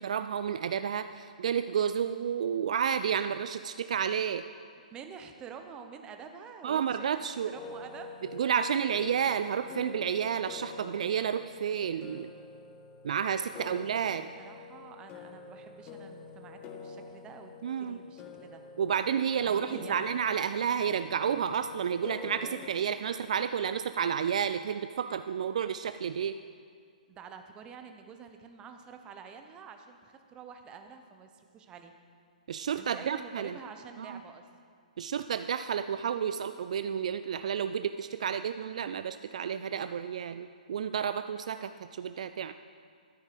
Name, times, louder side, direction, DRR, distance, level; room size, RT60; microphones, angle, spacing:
voice 1, 0.0-4.5 6.6-7.5 8.3-12.3 13.0-14.3 17.6-18.0 18.8-26.4 32.5-33.6 34.0-34.2 35.0-42.5, right 8 dB, 55° right, 11 dB, 0.4 m, -31 dB
voice 2, 4.9-8.1 13.5-13.8 14.1-17.5 17.8-18.6 19.4-20.2 27.1-31.9 32.7-34.5, right 6 dB, 20° right, 6 dB, 0.9 m, -48 dB
sound 1, 7.5-22.7, left 5 dB, 25° left, 0.9 m, -47 dB
13.0 x 9.4 x 5.1 m, 2.1 s
figure-of-eight pair, 125°, 4 cm